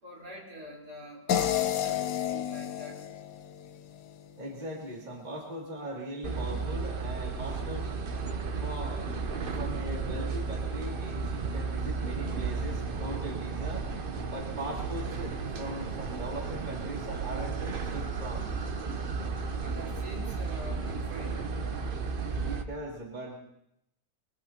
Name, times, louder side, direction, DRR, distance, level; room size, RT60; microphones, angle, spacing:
voice 1, 0.0-3.0 19.6-21.4, right 1 dB, 65° right, -2 dB, 4.8 m, -45 dB
sound 1, 1.3-4.4, left 10 dB, 80° left, 1.4 m, -31 dB
voice 2, 4.4-7.9 8.6-9.1 9.6-13.8 14.3-18.5 22.4-23.4, right 1 dB, 25° right, -2 dB, 2.6 m, -40 dB
sound 2, 6.2-22.6, right 4 dB, 40° right, 0.8 m, -34 dB
22.5 x 21.5 x 2.9 m, 0.78 s
omnidirectional pair, 1.8 m